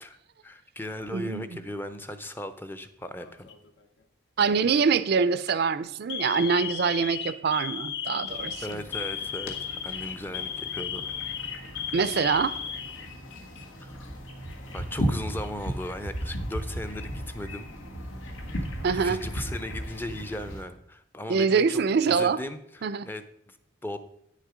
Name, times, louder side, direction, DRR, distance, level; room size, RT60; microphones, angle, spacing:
voice 1, 0.4-3.5 8.6-11.1 13.8-14.1 14.7-17.7 18.9-23.6 23.8-24.0, left 1 dB, 10° left, 10 dB, 0.5 m, -37 dB
voice 2, 1.1-1.6 4.4-8.6 11.9-12.6 18.8-19.2 21.3-22.4 22.8-23.1, right 5 dB, 55° right, 15 dB, 0.4 m, -24 dB
Alarm, 3.2-3.7 4.6-4.9 5.3-5.5 6.1-13.6 13.9-14.1 15.0-15.7, left 8 dB, 65° left, 0.7 m, -35 dB
sound 1, 8.3-20.7, equal, 85° left, 1.5 m, -36 dB
9.6 x 6.5 x 4.9 m, 0.73 s
head